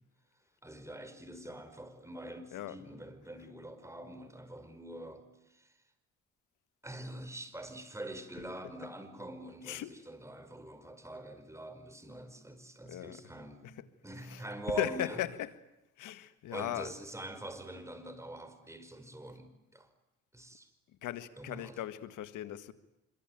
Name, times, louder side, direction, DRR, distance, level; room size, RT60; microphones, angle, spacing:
voice 1, 0.6-5.7 6.8-13.7 14.0-15.2 16.5-19.9 20.3-20.7 21.4-21.8, right 1 dB, 10° right, 5.1 m, -44 dB
voice 2, 14.8-15.3 16.0-16.9 21.0-22.7, left 13 dB, 85° left, 1.8 m, -37 dB
26.0 x 24.0 x 9.3 m
cardioid pair, 90°, 30 cm